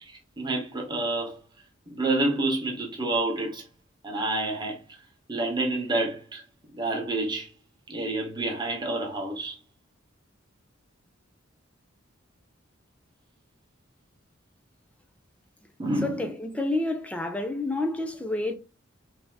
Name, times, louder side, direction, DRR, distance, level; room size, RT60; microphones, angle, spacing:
voice 1, 0.1-1.4 1.9-3.6 4.0-4.8 5.3-6.4 6.7-7.5 7.9-9.6 15.8-16.3, right 2 dB, 20° right, 0.8 m, -28 dB
voice 2, 16.0-18.5, left 2 dB, 5° left, 0.4 m, -29 dB
3.3 x 2.7 x 2.3 m
head